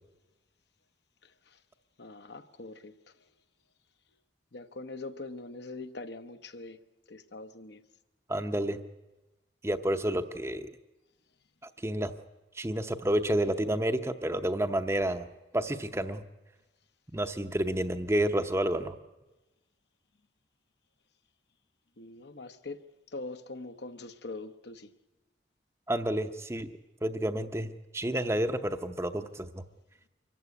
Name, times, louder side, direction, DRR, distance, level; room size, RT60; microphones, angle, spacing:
voice 1, 2.0-2.9 4.5-6.8 7.1-7.8 22.0-22.8 23.1-24.9, left 3 dB, 65° left, 1.0 m, -42 dB
voice 2, 8.3-8.8 9.6-10.7 11.6-12.1 12.5-15.3 15.5-16.2 17.1-19.0 25.9-26.7 27.0-29.6, right 1 dB, 15° right, 0.7 m, -30 dB
25.0 x 15.0 x 9.6 m
head